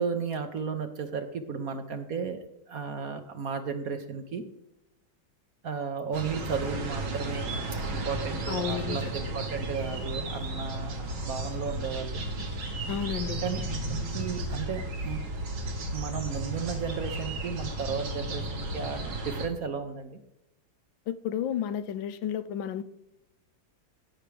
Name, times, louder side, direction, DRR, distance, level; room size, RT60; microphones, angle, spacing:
voice 1, 0.0-2.4 2.7-4.4 5.6-7.5 7.9-12.3 13.4-13.6 13.9-15.2 15.9-20.2, right 6 dB, 55° right, 7 dB, 1.1 m, -34 dB
sound 1, 6.1-19.5, right 2 dB, 80° right, 2.7 m, -34 dB
voice 2, 8.5-9.0 12.9-13.4 21.1-22.8, left 9 dB, 75° left, 13 dB, 1.3 m, -32 dB
18.0 x 6.1 x 3.4 m, 0.87 s
omnidirectional pair, 2.2 m